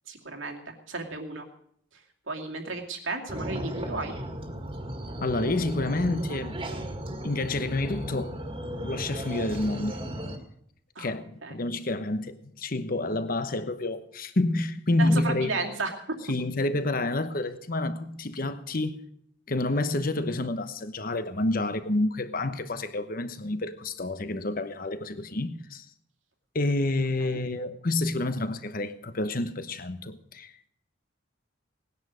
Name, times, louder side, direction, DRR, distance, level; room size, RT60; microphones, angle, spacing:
voice 1, 0.1-1.5 1.9-4.1 10.9-11.1 11.4-11.5 15.0-16.2 27.2-27.4, right 3 dB, 80° right, 2.5 m, -34 dB
sound 1, 3.3-10.4, equal, 25° right, 1.9 m, -35 dB
voice 2, 5.2-6.6 7.2-8.3 8.8-10.0 11.0-15.5 16.3-19.0 19.5-25.9 26.5-30.7, left 2 dB, 45° left, 1.0 m, -29 dB
19.0 x 10.5 x 6.4 m
head